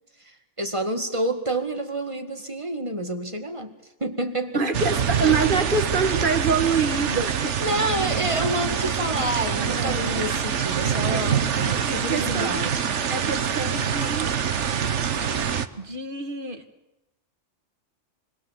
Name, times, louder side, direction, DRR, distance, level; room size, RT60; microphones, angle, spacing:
voice 1, 0.2-3.7 4.0-4.6 5.2-5.4 7.6-13.0 15.2-15.5, right 1 dB, 25° right, 6 dB, 2.0 m, -29 dB
voice 2, 4.5-7.6 9.6-10.0 11.1-11.2 11.8-12.6 13.1-14.3 15.8-16.6, right 4 dB, 40° right, 6 dB, 2.1 m, -26 dB
sound 1, 4.7-15.7, right 7 dB, 65° right, 1.3 m, -25 dB
28.5 x 21.0 x 7.6 m, 0.97 s
omnidirectional pair, 1.3 m